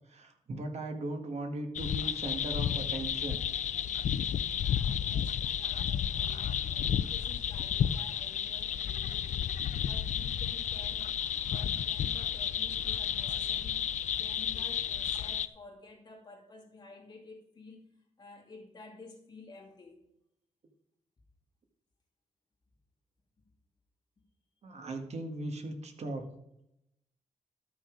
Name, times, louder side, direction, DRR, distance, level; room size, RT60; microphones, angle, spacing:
voice 1, 0.1-3.4 4.2-4.3 24.6-26.2, right 2 dB, 55° right, 4 dB, 1.5 m, -38 dB
sound 1, 1.8-15.5, left 9 dB, 65° left, 0.4 m, -32 dB
voice 2, 4.6-11.1 11.5-17.8 18.2-20.0, left 3 dB, 35° left, -2 dB, 2.4 m, -52 dB
12.5 x 6.3 x 5.1 m, 0.83 s
wide cardioid pair, 165°, 13 cm